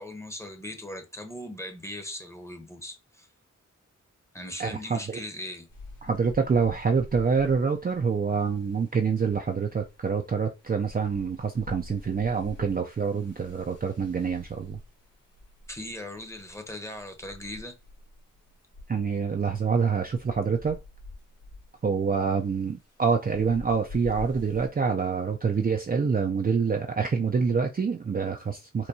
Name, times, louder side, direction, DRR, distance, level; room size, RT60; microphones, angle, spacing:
voice 1, 0.0-3.3 4.3-5.7 15.7-17.7, left 1 dB, 10° left, 0.9 m, -39 dB
voice 2, 4.6-5.2 6.0-14.8 18.9-20.8 21.8-28.9, right 5 dB, 30° right, 0.4 m, -26 dB
sound 1, 5.7-24.7, left 2 dB, 85° left, 1.7 m, -47 dB
4.4 x 2.2 x 2.7 m
cardioid pair, 45°, 31 cm